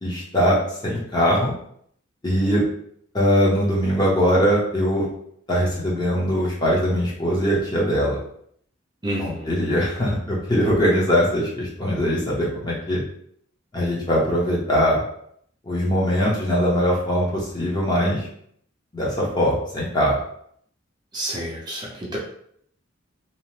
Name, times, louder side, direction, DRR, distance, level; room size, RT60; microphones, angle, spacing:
voice 1, 0.0-0.6 0.8-1.5 2.2-2.7 3.1-5.1 5.5-8.2 9.2-13.0 13.7-15.0 15.7-18.3 18.9-20.2, equal, 20° left, -5 dB, 0.7 m, -21 dB
voice 2, 9.0-9.6 21.1-22.2, right 1 dB, 20° right, -4 dB, 0.5 m, -29 dB
2.8 x 2.0 x 3.1 m, 0.67 s
head